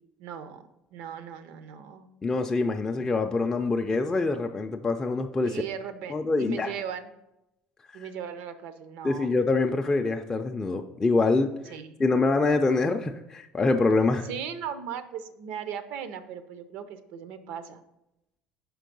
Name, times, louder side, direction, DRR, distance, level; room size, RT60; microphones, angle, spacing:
voice 1, 0.2-2.1 3.0-3.1 5.4-7.1 7.9-9.3 11.7-12.0 14.3-17.8, right 8 dB, 75° right, 11 dB, 0.6 m, -38 dB
voice 2, 2.2-5.6 6.1-6.7 9.0-11.5 12.0-14.3, left 3 dB, 15° left, 3 dB, 0.4 m, -25 dB
5.8 x 4.6 x 5.2 m, 0.89 s
cardioid pair, 120°, 3 cm